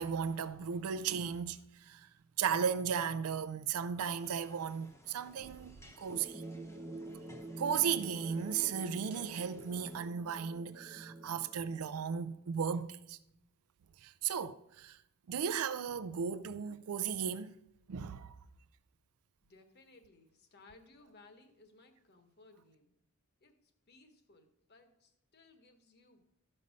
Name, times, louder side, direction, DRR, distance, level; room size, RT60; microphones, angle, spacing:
voice 1, 0.0-2.1 2.4-6.4 7.6-13.2 14.0-15.0 15.3-17.6 17.9-18.4, right 7 dB, 80° right, 0.4 m, -35 dB
sound 1, 4.1-10.0, left 1 dB, 15° left, 0.8 m, -59 dB
sound 2, 6.1-12.3, right 2 dB, 15° right, 0.5 m, -47 dB
voice 2, 19.4-22.9 23.4-26.2, left 3 dB, 45° left, 1.1 m, -62 dB
13.0 x 5.4 x 5.2 m
head